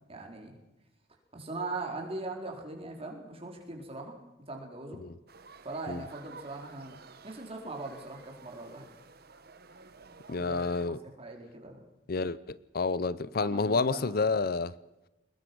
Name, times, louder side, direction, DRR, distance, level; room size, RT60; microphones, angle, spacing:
voice 1, 0.1-0.6 1.3-4.2 4.5-5.0 5.6-7.0 7.2-8.9 10.3-11.8 13.4-14.2, right 2 dB, 35° right, 4.4 m, -40 dB
sound 1, 5.3-10.9, right 4 dB, 60° right, 1.4 m, -52 dB
voice 2, 10.3-11.0 12.1-14.7, left 4 dB, 55° left, 0.6 m, -29 dB
22.5 x 20.5 x 6.1 m
head